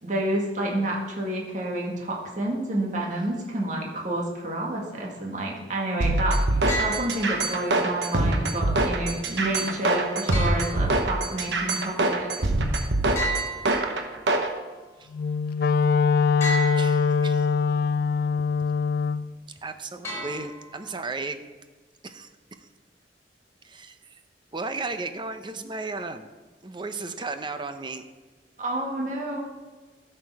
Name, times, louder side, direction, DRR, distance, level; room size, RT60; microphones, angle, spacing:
voice 1, 0.0-6.4 6.8-12.3 28.6-29.4, right 1 dB, 45° right, -2 dB, 1.9 m, -29 dB
sound 1, 6.0-14.5, right 2 dB, 85° right, 1.1 m, -24 dB
sound 2, 6.7-7.7 10.3-11.4 13.2-14.4 16.4-17.4 20.0-21.0, right 1 dB, 15° left, 3.6 m, -33 dB
Wind instrument woodwind instrument, 15.1-19.3, left 5 dB, 55° left, 0.3 m, -22 dB
voice 2, 16.7-17.5 19.6-21.4 22.0-22.3 23.6-24.0 24.5-26.3 26.6-28.0, right 3 dB, 25° right, 9 dB, 0.7 m, -34 dB
13.0 x 6.7 x 4.7 m, 1.3 s
head